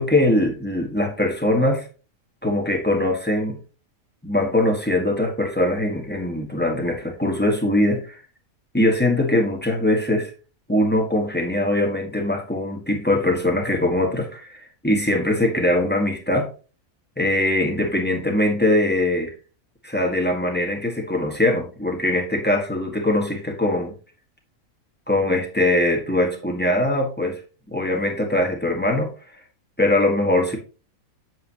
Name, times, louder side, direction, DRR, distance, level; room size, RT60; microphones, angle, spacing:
voice 1, 0.0-1.9 2.4-3.6 4.2-8.2 8.7-10.3 10.7-16.5 17.2-19.3 19.8-23.9 25.1-27.4 27.7-29.1 29.8-30.6, left 1 dB, 5° left, 1 dB, 1.4 m, -21 dB
7.8 x 7.0 x 2.9 m, 0.34 s
omnidirectional pair, 1.5 m